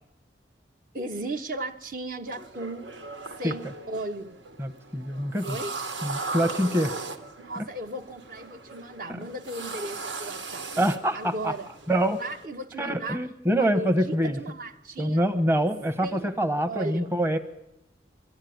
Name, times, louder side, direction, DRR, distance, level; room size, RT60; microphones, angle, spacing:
voice 1, 0.9-2.9 3.4-4.4 5.4-5.7 7.4-10.7 11.1-11.7 12.2-13.2 13.5-15.2 16.0-16.3 16.7-17.1, right 2 dB, 45° right, 7 dB, 0.9 m, -36 dB
sound 1, 2.3-12.5, right 3 dB, 85° right, 1.7 m, -38 dB
voice 2, 4.6-5.6 6.0-6.9 7.6-7.7 10.8-11.5 11.9-12.2 12.8-14.4 15.0-17.4, equal, 15° right, 8 dB, 0.9 m, -25 dB
22.0 x 14.0 x 9.3 m, 0.90 s
head